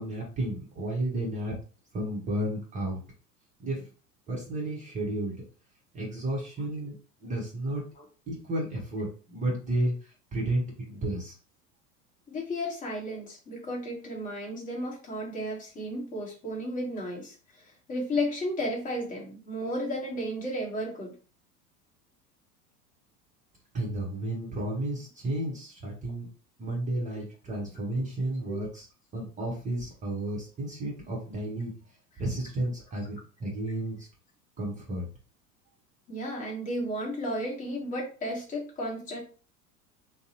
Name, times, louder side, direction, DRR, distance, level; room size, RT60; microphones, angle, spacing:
voice 1, 0.0-1.6 1.9-3.0 3.6-3.8 4.3-5.4 5.9-6.9 7.2-7.8 8.3-11.3 23.7-26.3 26.6-28.9 29.1-31.7 32.2-34.1 34.6-35.0, right 1 dB, 15° right, -2 dB, 0.7 m, -32 dB
voice 2, 12.3-17.3 17.9-21.1 28.5-28.6 36.1-39.2, equal, 15° left, -2 dB, 0.9 m, -33 dB
2.6 x 2.0 x 2.7 m, 0.37 s
figure-of-eight pair, 80°, 47 cm